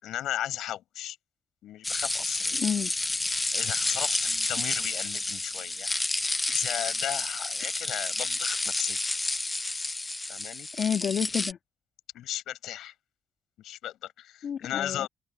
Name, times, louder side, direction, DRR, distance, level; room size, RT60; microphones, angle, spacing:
voice 1, 0.0-1.2 1.6-2.6 3.5-5.9 6.5-9.0 10.3-10.7 12.1-12.9 13.6-15.1, left 12 dB, 80° left, 7.8 m, -35 dB
sound 1, 1.8-11.5, left 2 dB, 20° left, 1.2 m, -30 dB
voice 2, 2.6-2.9 10.7-11.6 14.4-15.1, left 8 dB, 60° left, 3.3 m, -29 dB
open air
cardioid pair, 90°, 0 cm